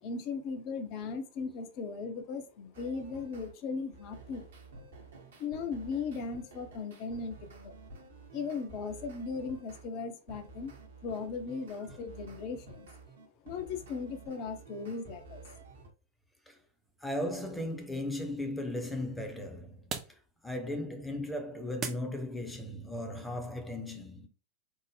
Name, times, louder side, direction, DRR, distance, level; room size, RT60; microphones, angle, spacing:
voice 1, 0.0-4.5 5.4-7.8 8.3-10.7 11.0-12.9 13.4-15.4, left 5 dB, 40° left, 0.6 m, -37 dB
sound 1, 2.7-3.5 3.9-9.9 10.3-15.9, right 3 dB, 60° right, 0.8 m, -51 dB
sound 2, 16.6-22.7, right 6 dB, 30° right, 0.5 m, -47 dB
voice 2, 17.0-20.2 20.4-24.3, left 1 dB, 5° left, 0.7 m, -37 dB
3.6 x 2.0 x 3.3 m
figure-of-eight pair, 90°, 0 cm